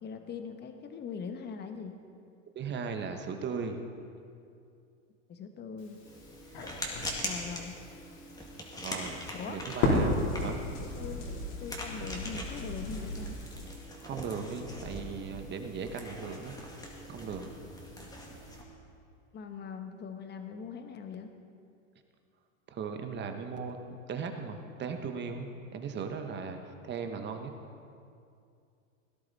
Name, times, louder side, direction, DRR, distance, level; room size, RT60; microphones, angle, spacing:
voice 1, 0.0-2.0 5.3-6.0 7.2-7.8 9.3-9.6 10.8-13.4 18.0-18.1 19.3-21.3, left 6 dB, 25° left, 6 dB, 1.1 m, -41 dB
voice 2, 2.5-3.8 8.8-9.2 9.5-10.6 14.0-16.5 17.1-17.5 22.7-26.6 26.8-27.5, right 5 dB, 25° right, 6 dB, 1.1 m, -37 dB
Crackle, 5.8-13.6, left 2 dB, 60° left, 3.6 m, -35 dB
sound 1, 6.0-18.6, left 1 dB, 10° left, 2.0 m, -42 dB
17.0 x 11.0 x 4.1 m, 2.4 s
hypercardioid pair, 120°, 39 cm